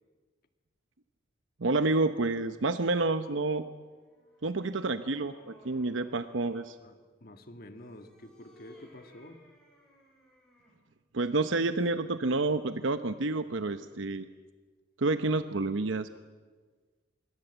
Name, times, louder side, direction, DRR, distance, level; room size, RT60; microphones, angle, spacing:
voice 1, 1.6-3.6 4.4-6.8 11.1-14.3 15.0-16.1, right 3 dB, 85° right, 10 dB, 0.9 m, -29 dB
sound 1, 3.8-6.7 7.7-10.8, equal, 5° left, 7.4 m, -61 dB
voice 2, 6.8-9.4, left 1 dB, 50° left, 7 dB, 1.9 m, -49 dB
26.5 x 22.5 x 8.2 m, 1.5 s
head